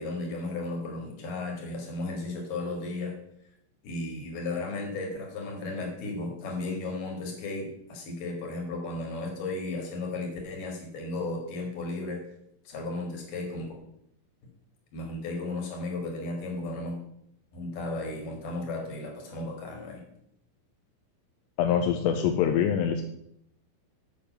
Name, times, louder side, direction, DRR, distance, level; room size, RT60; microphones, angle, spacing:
voice 1, 0.0-3.1 3.8-12.2 12.6-13.7 14.9-17.0 17.5-20.0, left 2 dB, 55° left, 1 dB, 3.0 m, -34 dB
voice 2, 21.6-23.0, left 8 dB, 85° left, 5 dB, 2.5 m, -24 dB
7.0 x 6.6 x 5.6 m, 0.76 s
omnidirectional pair, 5.4 m